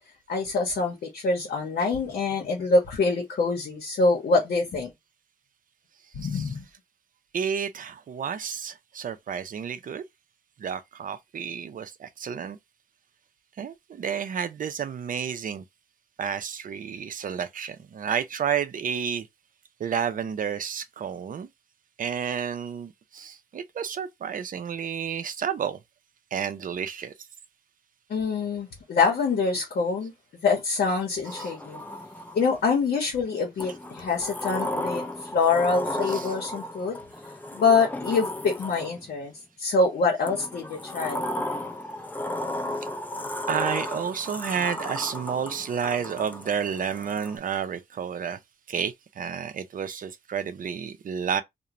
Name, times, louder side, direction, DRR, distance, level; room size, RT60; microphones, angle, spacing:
voice 1, 0.3-4.9 6.2-6.6 28.1-30.1 30.4-31.8 32.3-35.1 35.3-37.0 37.5-39.3 39.6-41.3, left 4 dB, 85° left, 0.8 m, -25 dB
voice 2, 7.3-10.0 10.6-12.6 13.6-15.6 16.2-19.3 19.8-21.5 22.0-25.8 26.3-27.1 31.4-31.5 36.1-36.3 43.5-48.4 48.7-51.4, right 7 dB, 60° right, 0.5 m, -31 dB
Sliding door, 31.2-32.6 33.6-39.2 40.3-47.4, left 1 dB, 10° left, 0.4 m, -34 dB
2.5 x 2.1 x 2.9 m
wide cardioid pair, 100°, 16 cm